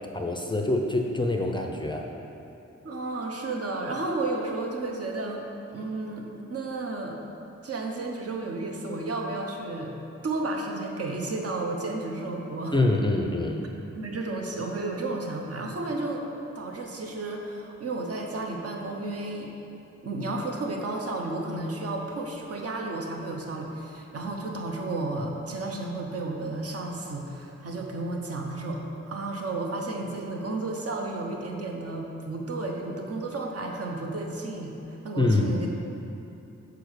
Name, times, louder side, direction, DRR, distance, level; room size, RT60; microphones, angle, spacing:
voice 1, 0.1-2.1 12.7-13.6 35.2-35.7, left 2 dB, 15° left, 2 dB, 0.5 m, -25 dB
voice 2, 2.8-5.4 5.7-7.2 7.6-9.9 10.2-12.8 13.9-16.2 16.5-19.5 20.0-35.7, right 2 dB, 55° right, 1 dB, 0.9 m, -32 dB
6.8 x 4.8 x 6.4 m, 3.0 s
wide cardioid pair, 160°, 30 cm